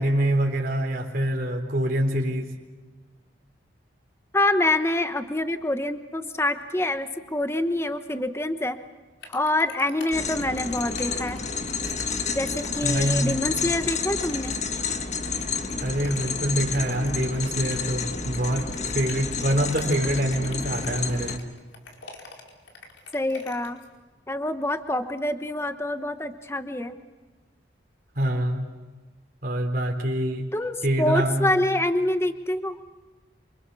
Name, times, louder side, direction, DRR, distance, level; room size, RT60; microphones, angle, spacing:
voice 1, 0.0-2.6 12.8-13.4 15.8-21.4 28.2-28.7 29.4-30.5 30.8-31.5, right 1 dB, 50° right, 2 dB, 3.8 m, -25 dB
voice 2, 4.3-8.8 9.3-11.4 12.3-14.6 23.1-23.8 24.3-27.0 30.5-32.8, left 1 dB, 15° left, 9 dB, 1.1 m, -26 dB
sound 1, 9.2-23.9, left 4 dB, 80° left, 4.8 m, -45 dB
sound 2, 10.1-21.4, left 5 dB, 40° left, 1.6 m, -30 dB
28.5 x 26.0 x 7.0 m, 1.3 s
head